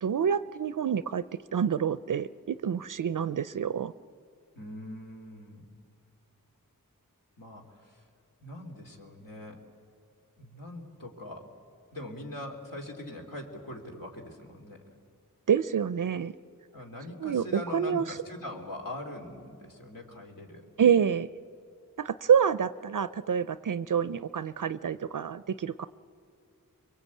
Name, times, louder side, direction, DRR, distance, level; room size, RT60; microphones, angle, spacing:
voice 1, 0.0-1.2 1.5-3.9 15.5-16.3 17.2-18.0 20.8-21.3 22.0-25.9, right 7 dB, 65° right, 15 dB, 0.5 m, -27 dB
voice 2, 4.5-5.6 7.4-8.1 8.4-9.6 10.4-11.5 11.9-14.8 16.7-20.7, left 1 dB, 70° left, 1 dB, 3.2 m, -42 dB
24.5 x 22.5 x 8.4 m, 2.4 s
wide cardioid pair, 55°, 34 cm